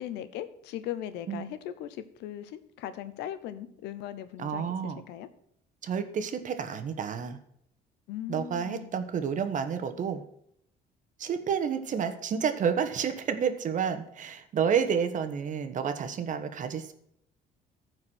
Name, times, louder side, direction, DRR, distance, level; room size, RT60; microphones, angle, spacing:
voice 1, 0.0-5.3 8.1-8.9, left 11 dB, 90° left, 12 dB, 1.0 m, -39 dB
voice 2, 4.4-5.0 5.8-7.4 8.3-10.2 11.2-16.9, right 7 dB, 50° right, 9 dB, 1.3 m, -30 dB
14.5 x 4.8 x 6.2 m, 0.73 s
cardioid pair, 110°, 17 cm